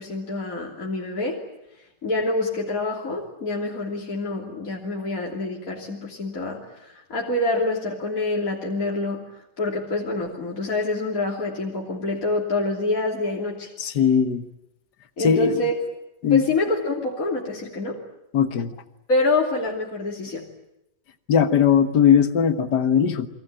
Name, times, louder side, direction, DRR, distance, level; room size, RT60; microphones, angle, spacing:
voice 1, 0.0-1.5 2.0-9.3 9.6-13.7 15.2-15.9 16.3-18.0 19.1-20.5, left 2 dB, 50° left, -1 dB, 3.5 m, -26 dB
voice 2, 13.8-14.4 15.2-15.5 16.2-16.4 18.3-18.7 21.3-23.3, left 8 dB, 70° left, 10 dB, 2.0 m, -19 dB
29.0 x 22.5 x 8.9 m, 0.84 s
omnidirectional pair, 1.9 m